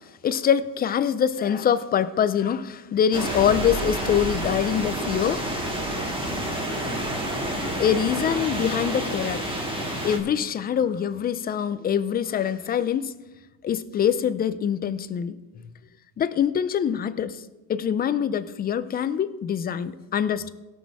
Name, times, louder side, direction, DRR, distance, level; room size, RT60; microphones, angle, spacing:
voice 1, 0.2-5.4 7.7-9.4 10.0-13.1 13.6-15.4 16.2-17.4 17.7-20.5, left 8 dB, 25° left, 13 dB, 0.3 m, -24 dB
sound 1, 3.1-10.2, right 1 dB, 10° right, 1.9 m, -29 dB
17.0 x 6.4 x 4.6 m, 1.1 s
cardioid pair, 135°, 47 cm